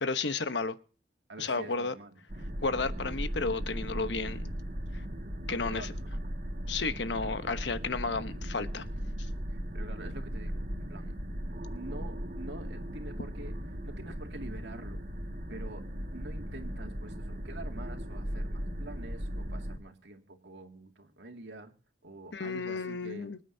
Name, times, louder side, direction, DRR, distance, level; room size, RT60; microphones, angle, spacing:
voice 1, 0.0-0.8 1.4-1.9 2.6-4.5 5.5-5.9 6.7-8.8 22.3-23.4, left 4 dB, 75° left, 1.1 m, -32 dB
voice 2, 1.3-2.2 2.8-3.1 5.5-6.1 9.5-11.1 11.7-13.5 13.8-15.0 15.5-15.8 16.1-21.7 22.0-23.3, right 2 dB, 75° right, 2.4 m, -47 dB
sound 1, 2.3-19.8, equal, 50° right, 2.0 m, -37 dB
25.5 x 9.1 x 2.8 m
head